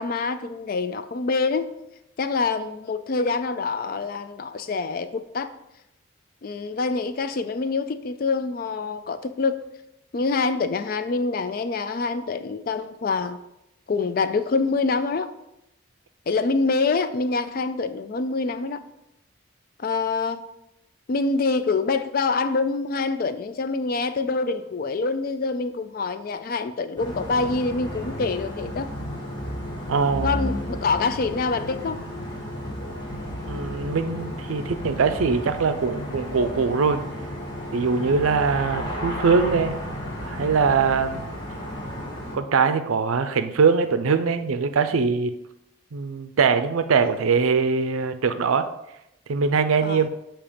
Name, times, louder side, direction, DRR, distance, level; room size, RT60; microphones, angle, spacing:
voice 1, 0.0-1.7 2.2-5.5 6.4-9.6 10.1-13.4 13.9-15.3 16.3-18.8 19.8-20.4 21.1-28.9 30.2-32.0 49.8-50.0, left 4 dB, 45° left, 11 dB, 0.3 m, -25 dB
sound 1, 27.0-42.4, equal, 25° left, 1.1 m, -33 dB
voice 2, 29.9-30.3 33.5-37.0 37.7-39.8 40.2-41.3 42.3-45.3 45.9-48.7 49.3-50.1, right 5 dB, 90° right, 10 dB, 0.5 m, -22 dB
7.0 x 2.9 x 5.0 m, 0.86 s
head